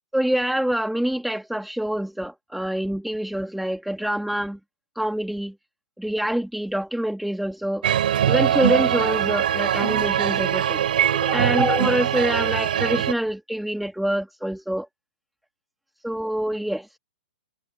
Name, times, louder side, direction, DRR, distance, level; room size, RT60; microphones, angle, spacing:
voice 1, 0.1-4.6 5.0-5.5 6.0-7.8 8.3-10.8 11.1-14.9 16.0-16.8, right 1 dB, ahead, 3.2 m, -26 dB
sound 1, 7.8-13.1, right 10 dB, 70° right, 4.2 m, -22 dB
hypercardioid pair, 135°, 5 cm